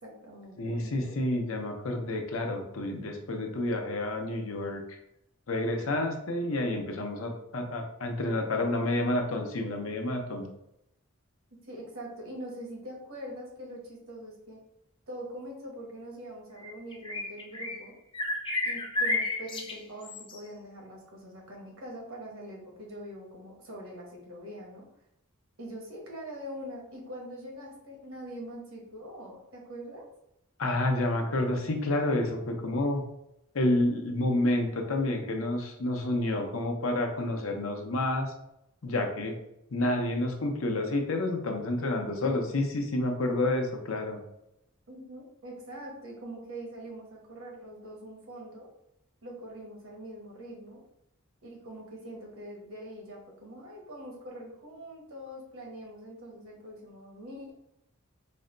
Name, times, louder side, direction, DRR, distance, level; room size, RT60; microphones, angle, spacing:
voice 1, 0.0-1.2 11.5-14.6 15.1-17.9 18.6-24.9 25.6-30.1 44.9-48.7 49.2-50.8 51.4-57.5, right 1 dB, 75° right, -1 dB, 1.2 m, -43 dB
voice 2, 0.6-4.8 5.5-10.5 30.6-33.0 33.5-38.3 38.8-39.3 39.7-44.2, left 1 dB, 70° left, 3 dB, 0.7 m, -29 dB
sound 1, 16.6-17.9 18.1-20.4, left 2 dB, 25° left, 0.4 m, -32 dB
4.1 x 2.1 x 3.8 m, 0.82 s
head